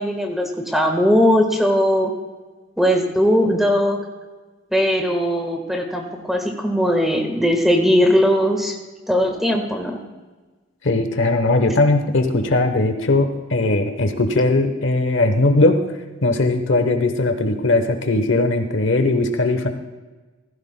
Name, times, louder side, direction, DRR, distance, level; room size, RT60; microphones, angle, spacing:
voice 1, 0.0-2.1 2.8-4.0 4.7-8.8 9.1-10.0, equal, ahead, 2 dB, 1.4 m, -19 dB
voice 2, 10.8-15.8 16.2-19.7, left 2 dB, 65° left, 7 dB, 1.0 m, -19 dB
15.5 x 15.0 x 2.2 m, 1.3 s
head